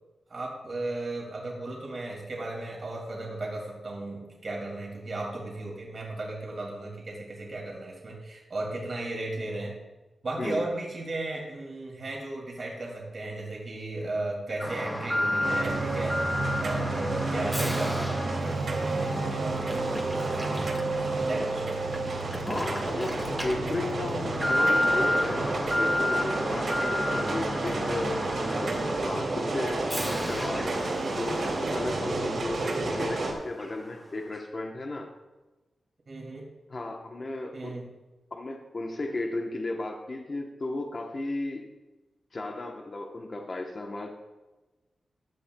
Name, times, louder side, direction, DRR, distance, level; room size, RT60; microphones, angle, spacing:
voice 1, 0.3-9.7 10.2-19.9 20.3-20.8 21.0-21.7 36.1-36.4 37.5-37.9, right 2 dB, 45° right, -3 dB, 2.4 m, -35 dB
voice 2, 10.4-10.7 22.4-28.2 28.6-29.9 30.3-35.1 36.7-37.8 38.3-41.6 42.3-44.1, left 2 dB, 35° left, 2 dB, 0.9 m, -35 dB
Alarm, 14.6-33.3 33.6-33.7 34.3-34.4, left 1 dB, 5° left, 1.7 m, -32 dB
sound 1, 15.4-33.3, right 2 dB, 60° right, 2.5 m, -30 dB
15.5 x 11.5 x 2.3 m, 1.1 s
wide cardioid pair, 155°, 0 cm